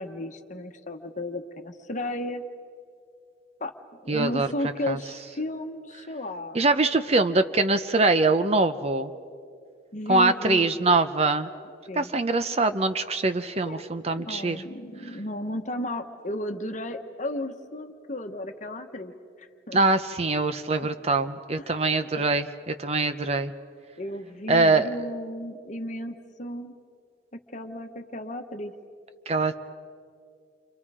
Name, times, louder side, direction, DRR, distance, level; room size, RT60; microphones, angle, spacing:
voice 1, 0.0-2.4 3.6-6.6 9.9-10.7 11.9-12.1 13.7-13.9 14.2-19.1 19.4-19.8 20.8-20.9 21.6-21.7 22.2-22.3 24.0-26.8 27.5-28.7, left 1 dB, 40° left, 6 dB, 1.2 m, -34 dB
voice 2, 4.1-4.5 4.9-5.0 6.5-9.1 10.1-11.5 12.0-14.6 19.7-23.5 24.5-24.9 29.3-29.5, right 3 dB, 35° right, 10 dB, 0.7 m, -23 dB
29.5 x 26.0 x 4.9 m, 2.3 s
head